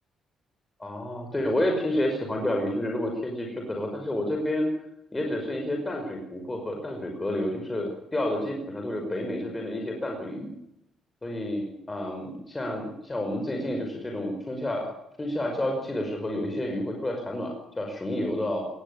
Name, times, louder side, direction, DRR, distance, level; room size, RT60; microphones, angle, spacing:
voice 1, 0.8-4.7 5.1-10.6 11.2-14.9 15.2-18.7, left 1 dB, 20° left, 2 dB, 5.6 m, -30 dB
20.5 x 15.5 x 9.8 m, 0.82 s
cardioid pair, 90°, 0 cm